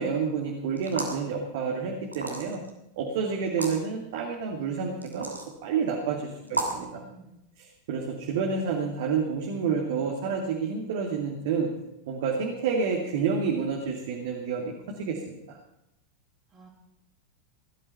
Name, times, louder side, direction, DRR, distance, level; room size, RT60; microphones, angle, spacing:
voice 1, 0.0-2.6 3.0-5.3 5.6-7.0 7.6-11.7 12.1-15.6, right 5 dB, 55° right, 1 dB, 2.4 m, -29 dB
sound 1, 0.8-1.3 2.1-2.7 3.5-3.8 5.0-5.5 6.5-6.8, right 2 dB, 85° right, 3.0 m, -32 dB
voice 2, 6.1-7.4 16.5-16.7, right 3 dB, 25° right, -5 dB, 3.6 m, -52 dB
18.5 x 12.5 x 5.7 m, 0.87 s
figure-of-eight pair, 90°, 0 cm